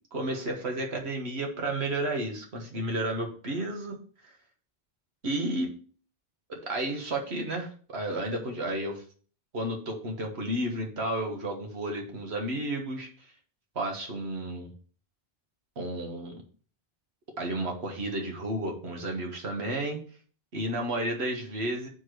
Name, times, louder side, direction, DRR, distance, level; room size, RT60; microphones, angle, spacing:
voice 1, 0.1-4.0 5.2-5.7 6.5-9.0 9.5-13.1 13.7-14.7 15.8-16.3 17.4-20.0 20.5-21.9, right 1 dB, 70° right, 2 dB, 1.6 m, -32 dB
4.8 x 4.4 x 6.0 m, 0.43 s
omnidirectional pair, 1.1 m